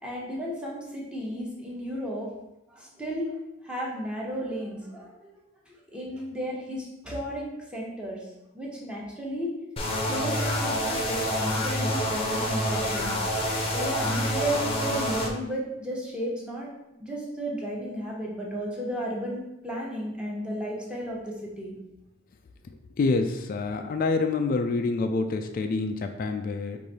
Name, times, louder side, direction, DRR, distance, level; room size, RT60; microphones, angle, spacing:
voice 1, 0.0-2.3 2.7-3.4 3.6-5.3 5.7-8.2 8.5-9.6 10.1-13.1 13.7-16.7 17.0-21.7, equal, 5° right, -4 dB, 1.0 m, -33 dB
sound 1, 9.8-15.3, equal, 30° left, 0.7 m, -27 dB
voice 2, 23.0-26.8, left 3 dB, 45° left, 6 dB, 0.3 m, -27 dB
4.8 x 2.6 x 4.1 m, 0.92 s
head